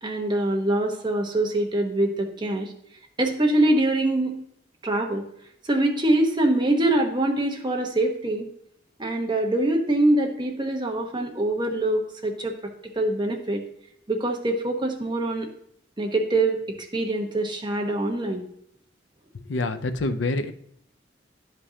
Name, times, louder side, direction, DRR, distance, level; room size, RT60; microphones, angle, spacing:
voice 1, 0.0-2.7 3.2-4.4 4.8-5.2 5.6-8.5 9.0-12.6 12.9-13.6 14.1-15.5 16.0-18.4, right 1 dB, 25° right, 2 dB, 1.0 m, -24 dB
voice 2, 19.5-20.5, left 2 dB, 90° left, 10 dB, 0.6 m, -26 dB
11.0 x 5.3 x 2.8 m, 0.71 s
head